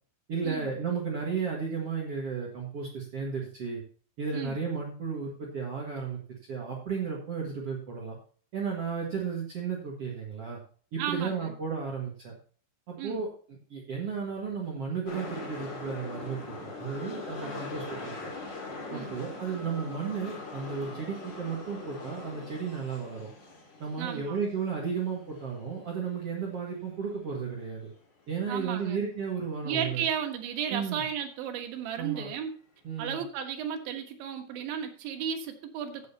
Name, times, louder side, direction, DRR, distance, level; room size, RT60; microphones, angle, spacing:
voice 1, 0.3-3.8 4.2-6.2 6.5-8.2 8.5-10.6 10.9-12.3 12.9-18.3 18.9-23.3 23.8-27.9 28.3-30.1 30.7-31.0 31.9-32.3 32.8-33.2, right 6 dB, 55° right, -2 dB, 1.8 m, -34 dB
voice 2, 11.0-11.5 13.0-13.2 17.4-17.7 18.9-19.1 24.0-24.4 28.5-29.0 29.7-32.5 33.0-36.1, right 8 dB, 85° right, 4 dB, 3.7 m, -34 dB
sound 1, 15.1-27.1 27.4-27.5, left 3 dB, 35° left, 2.1 m, -42 dB
15.0 x 7.8 x 2.8 m, 0.43 s
omnidirectional pair, 5.2 m